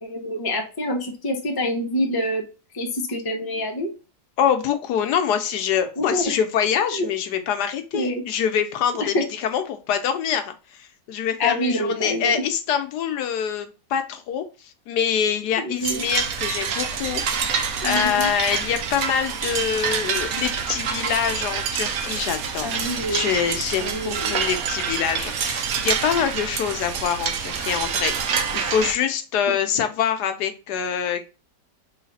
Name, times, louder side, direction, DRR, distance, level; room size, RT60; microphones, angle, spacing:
voice 1, 0.0-2.4 2.7-3.9 6.0-6.4 6.9-7.1 7.9-8.2 9.0-9.2 11.4-12.4 15.6-16.0 17.8-18.3 22.6-23.2 23.8-24.3, left 1 dB, 25° left, 1 dB, 0.5 m, -26 dB
voice 2, 4.4-31.2, left 8 dB, 75° left, 8 dB, 1.1 m, -25 dB
sound 1, 15.8-28.9, right 7 dB, 70° right, 1.0 m, -27 dB
3.2 x 3.2 x 4.0 m, 0.32 s
omnidirectional pair, 1.8 m